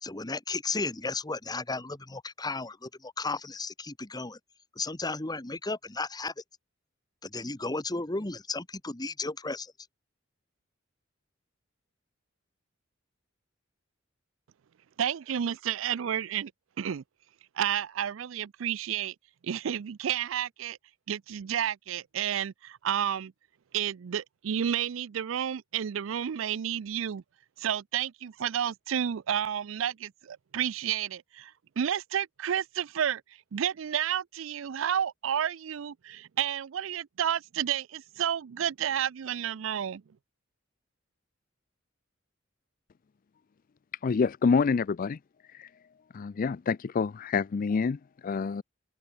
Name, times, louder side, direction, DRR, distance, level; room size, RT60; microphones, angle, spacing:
voice 1, 0.0-4.4 4.7-6.4 7.2-9.7, left 3 dB, 20° left, 1.4 m, -34 dB
voice 2, 15.0-16.5 16.8-17.0 17.6-19.1 19.4-20.8 21.1-23.3 23.7-27.2 27.6-33.2 33.5-40.0, right 9 dB, 75° right, 0.4 m, -31 dB
voice 3, 44.0-45.2 45.5-45.7 46.1-48.6, left 5 dB, 45° left, 0.4 m, -27 dB
open air
head